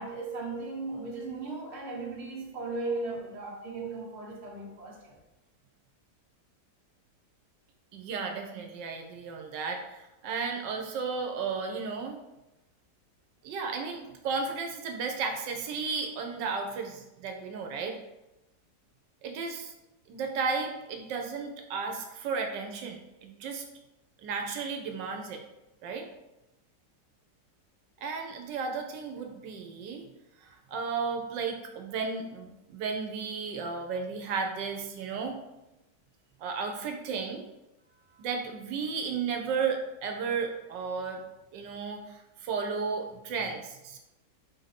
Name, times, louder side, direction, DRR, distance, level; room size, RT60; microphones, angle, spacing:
voice 1, 0.0-5.2 38.1-38.3, right 3 dB, 45° right, 1.1 m, -37 dB
voice 2, 7.9-12.2 13.4-18.0 19.2-19.7 20.1-23.6 24.2-25.4 25.8-26.1 28.0-30.0 30.4-35.3 36.4-37.4 38.2-41.2 41.5-44.0, right 5 dB, 90° right, 1.3 m, -34 dB
4.7 x 2.6 x 4.1 m
omnidirectional pair, 1.9 m